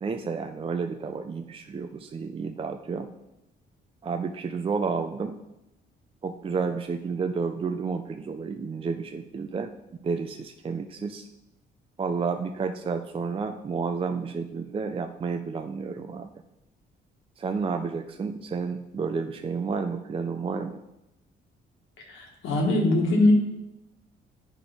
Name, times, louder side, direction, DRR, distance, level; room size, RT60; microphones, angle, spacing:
voice 1, 0.0-3.1 4.0-5.4 6.2-9.7 10.0-11.3 12.0-16.3 17.4-20.8, right 5 dB, 30° right, 6 dB, 0.4 m, -31 dB
voice 2, 22.1-23.3, left 2 dB, 85° left, 0 dB, 1.6 m, -22 dB
8.5 x 5.2 x 3.5 m, 0.91 s
cardioid pair, 90°, 20 cm